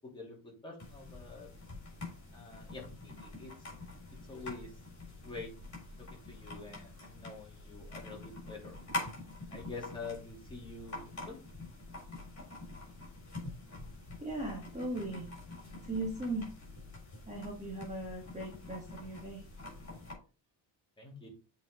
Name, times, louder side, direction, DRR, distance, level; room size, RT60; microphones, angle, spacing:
voice 1, 0.1-1.5 2.3-2.8 3.2-3.5 4.3-4.7 5.2-5.5 6.3-8.8 9.5-11.4 21.0-21.3, left 3 dB, 10° left, -4 dB, 2.9 m, -46 dB
sound 1, 0.8-20.1, left 2 dB, 40° left, 4.5 m, -46 dB
voice 2, 14.2-15.3 15.8-16.5 17.3-19.4, right 2 dB, 15° right, -1 dB, 1.5 m, -38 dB
8.2 x 4.8 x 3.7 m, 0.34 s
wide cardioid pair, 160°, 45 cm